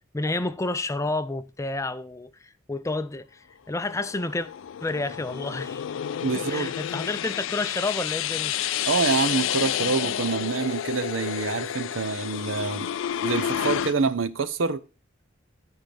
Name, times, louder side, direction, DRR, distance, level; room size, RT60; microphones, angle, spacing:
voice 1, 0.1-4.5 4.8-5.8 6.3-8.5, left 2 dB, 15° left, 0.4 m, -30 dB
sound 1, 3.8-13.9, left 10 dB, 80° left, 0.4 m, -30 dB
voice 2, 6.2-6.7 8.9-12.9 13.2-14.8, right 4 dB, 85° right, 0.7 m, -26 dB
10.0 x 4.5 x 5.2 m
head